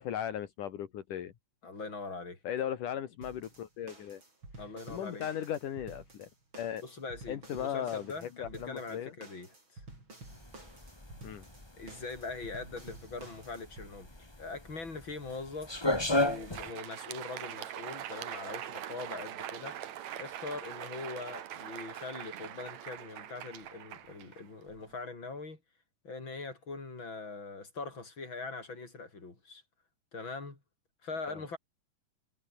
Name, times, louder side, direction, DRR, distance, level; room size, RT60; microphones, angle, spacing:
voice 1, 0.0-1.3 2.4-4.2 4.9-6.3 6.5-6.8 7.3-9.1 11.2-11.4 31.3-31.4, left 10 dB, 75° left, 3.4 m, -37 dB
voice 2, 1.6-2.4 4.6-5.3 6.8-9.8 11.8-14.1 14.4-19.8 20.2-25.6 26.0-29.6 30.1-30.6 31.0-31.6, left 3 dB, 35° left, 6.4 m, -42 dB
sound 1, 3.2-13.9, right 2 dB, 35° right, 8.6 m, -51 dB
sound 2, 10.3-16.7, left 1 dB, 10° left, 2.1 m, -33 dB
Crowd, 16.1-24.9, right 11 dB, 60° right, 2.6 m, -43 dB
omnidirectional pair, 3.8 m